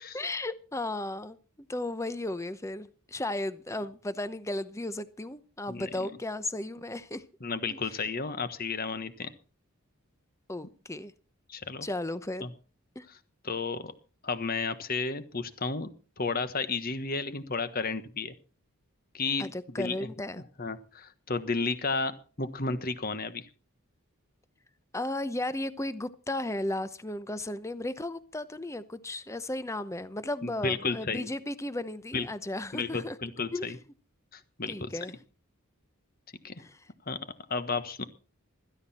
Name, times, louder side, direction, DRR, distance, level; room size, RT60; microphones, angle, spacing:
voice 1, 0.1-7.2 7.7-8.1 10.5-11.1 11.8-12.5 12.9-13.1 19.4-20.4 24.9-33.2 33.5-33.7 34.7-35.1 36.6-36.9, left 1 dB, 15° left, 0.8 m, -35 dB
voice 2, 5.7-6.1 7.4-9.3 11.5-11.9 12.4-12.5 13.4-13.9 14.2-15.9 16.2-18.3 19.1-19.5 19.8-20.0 20.6-23.4 30.4-31.3 32.1-32.3 32.7-33.8 34.3-34.9 36.4-36.6 37.1-37.2 37.5-38.0, left 4 dB, 40° left, 1.3 m, -32 dB
16.0 x 13.5 x 4.3 m
head